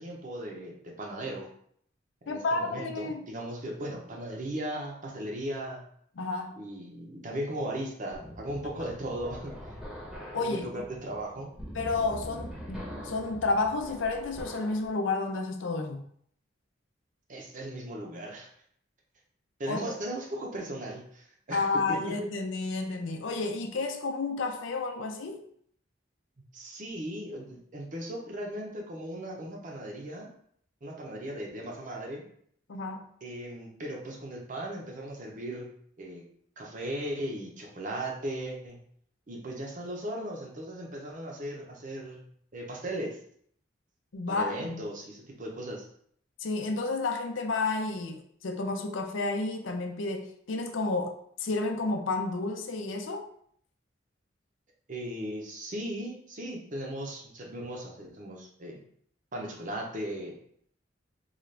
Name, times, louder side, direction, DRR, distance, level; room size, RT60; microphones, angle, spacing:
voice 1, 0.0-1.5 2.3-5.8 6.6-9.6 10.4-11.5 17.3-18.5 19.6-22.0 26.5-30.3 30.8-32.2 33.2-35.7 36.0-36.2 36.6-38.8 39.3-42.2 42.5-43.2 44.3-45.8 54.9-58.8 59.3-60.4, right 1 dB, 45° right, 0 dB, 0.8 m, -37 dB
voice 2, 2.3-3.2 6.2-6.6 10.3-10.8 11.7-16.0 19.7-19.8 21.5-25.4 32.7-33.0 44.1-44.8 46.4-53.3, left 3 dB, 85° left, 5 dB, 0.5 m, -31 dB
sound 1, 8.1-14.9, equal, 5° right, 0.8 m, -43 dB
3.9 x 2.4 x 3.2 m, 0.65 s
head